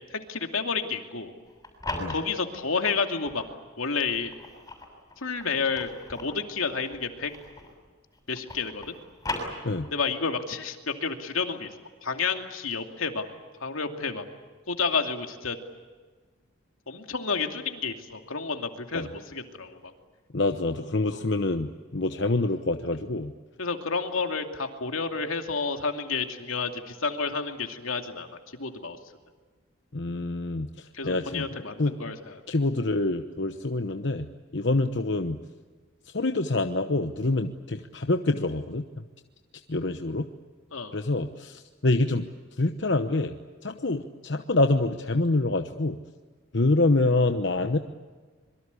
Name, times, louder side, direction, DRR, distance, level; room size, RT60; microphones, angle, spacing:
voice 1, 0.1-1.3 2.1-3.4 3.8-4.3 5.2-7.3 8.3-8.8 9.9-11.7 12.0-13.2 13.6-14.2 14.7-15.6 16.9-19.9 21.1-21.2 23.6-29.0 30.9-32.4 40.7-41.0, left 4 dB, 80° left, 5 dB, 2.6 m, -30 dB
sound 1, 1.4-3.5 4.1-7.9 8.1-10.1, left 2 dB, 15° left, 6.8 m, -38 dB
voice 2, 20.3-23.3 29.9-31.9 32.5-34.3 34.5-35.4 36.1-38.9 39.7-40.3 40.9-42.3 42.6-43.3 43.6-46.0 46.5-47.8, left 2 dB, 55° left, 7 dB, 1.0 m, -26 dB
26.0 x 23.5 x 8.4 m, 1.4 s
head